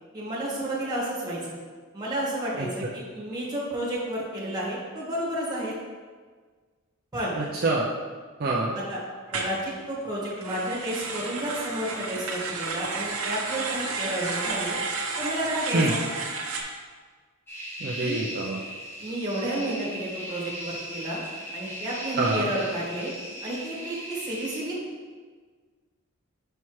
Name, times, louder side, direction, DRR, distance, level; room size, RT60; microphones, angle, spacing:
voice 1, 0.1-1.6 1.9-5.7 7.1-7.4 8.7-9.0 9.3-14.7 15.2-16.0 17.9-18.2 19.0-21.2 21.5-23.1 23.4-24.8, right 1 dB, 20° right, -6 dB, 1.7 m, -31 dB
voice 2, 2.6-2.9 7.3-7.9 8.4-8.7 15.7-15.9 17.8-18.6 22.2-22.5, right 2 dB, 45° right, -4 dB, 0.5 m, -26 dB
sound 1, 9.3-9.6 10.3-16.6, right 4 dB, 65° right, 0.8 m, -32 dB
sound 2, 17.5-24.6, equal, 10° left, 0.9 m, -38 dB
5.8 x 5.6 x 3.1 m, 1.5 s
head